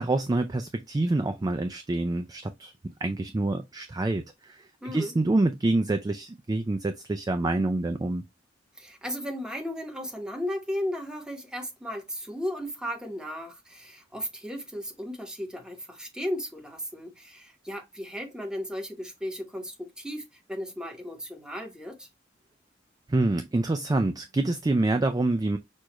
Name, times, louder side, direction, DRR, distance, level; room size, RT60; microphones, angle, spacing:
voice 1, 0.0-2.7 3.0-8.2 23.1-25.6, right 2 dB, 20° right, 0.3 m, -27 dB
voice 2, 4.8-5.1 8.8-22.1, equal, 5° right, 1.1 m, -35 dB
6.2 x 2.4 x 3.0 m
head